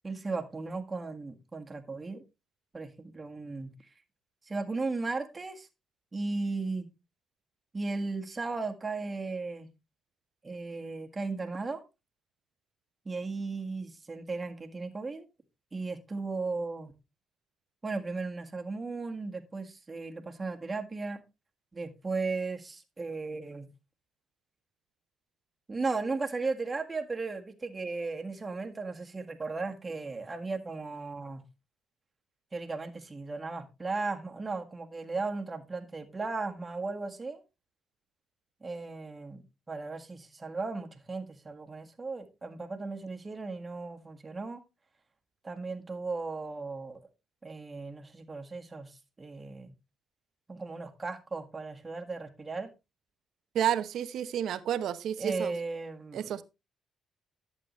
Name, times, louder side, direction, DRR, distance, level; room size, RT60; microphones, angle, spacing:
voice 1, 0.0-2.2 2.7-3.7 4.5-5.7 6.1-6.9 7.7-9.7 10.4-11.8 13.0-15.2 15.7-16.9 17.8-21.2 21.7-23.7 25.7-31.4 32.5-37.4 38.6-39.4 39.7-44.6 45.4-47.0 47.4-49.7 50.5-52.7 55.2-56.3, right 3 dB, 25° right, 1.7 m, -36 dB
voice 2, 53.5-55.5 56.1-56.4, right 10 dB, 75° right, 0.8 m, -30 dB
11.0 x 8.0 x 3.1 m
cardioid pair, 90°, 0 cm